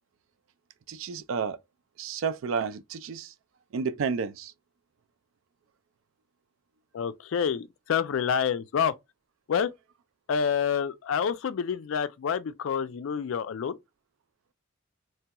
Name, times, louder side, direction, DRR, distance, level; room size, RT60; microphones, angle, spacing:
voice 1, 0.9-1.6 2.0-3.3 3.7-4.5, right 5 dB, 65° right, 0.4 m, -31 dB
voice 2, 6.9-8.9 9.5-9.7 10.3-13.8, left 7 dB, 65° left, 0.3 m, -28 dB
3.2 x 2.9 x 2.2 m
head